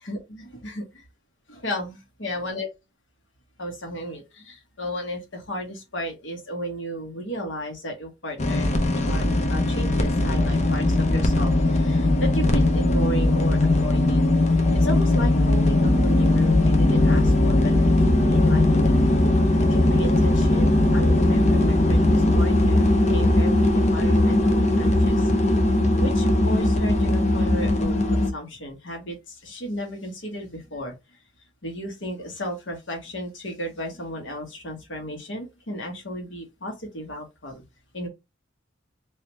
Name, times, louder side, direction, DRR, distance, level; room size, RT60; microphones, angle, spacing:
voice 1, 0.0-0.8 1.5-2.7 3.6-17.7 18.0-19.0 19.6-25.3 26.0-31.2 31.6-37.6 37.9-38.1, equal, 65° left, 1.4 m, -34 dB
sound 1, 8.4-28.3, left 1 dB, 35° left, 0.6 m, -19 dB
3.3 x 2.7 x 3.0 m
head